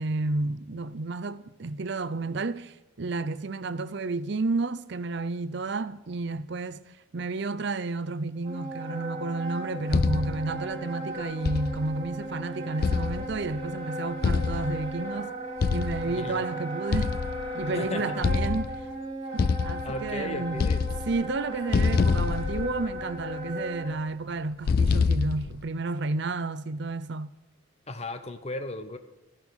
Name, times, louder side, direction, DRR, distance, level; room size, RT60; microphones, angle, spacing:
voice 1, 0.0-6.8 7.1-15.3 15.7-17.2 17.5-18.7 19.3-20.6 21.1-27.3, right 3 dB, 60° right, 0.6 m, -31 dB
Wind instrument woodwind instrument, 8.4-23.9, right 1 dB, 30° right, 4.8 m, -36 dB
sound 1, 9.9-10.5 11.5-12.0 12.8-13.6 14.2-15.0 15.6-16.2 16.9-17.7 18.2-18.9 19.4-20.2 20.5-21.4 21.7-23.2 24.7-25.6, left 4 dB, 50° left, 0.4 m, -26 dB
voice 2, 16.1-16.5 17.7-18.0 19.8-20.8 27.9-29.0, left 2 dB, 30° left, 0.9 m, -35 dB
13.0 x 11.0 x 6.3 m
head